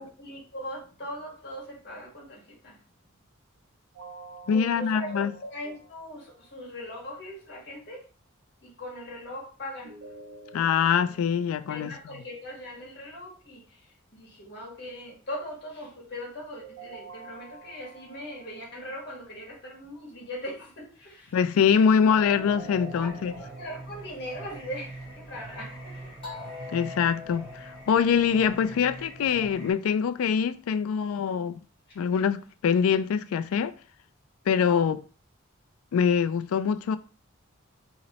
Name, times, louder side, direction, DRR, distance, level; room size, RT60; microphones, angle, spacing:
voice 1, 0.0-2.8 4.5-8.0 8.6-10.0 11.7-21.4 22.8-23.1 23.4-26.1 31.9-32.0, equal, 50° left, 1.5 m, -40 dB
sound 1, 3.9-6.9 9.8-12.9 16.6-19.8 22.4-23.8, right 4 dB, 70° right, 0.6 m, -49 dB
voice 2, 4.5-5.3 10.5-11.9 21.3-23.3 26.7-31.6 32.0-33.7 34.5-35.0 35.9-37.0, left 7 dB, 80° left, 0.3 m, -24 dB
Singing, 22.0-29.7, equal, 25° left, 1.7 m, -42 dB
3.0 x 2.8 x 4.1 m
head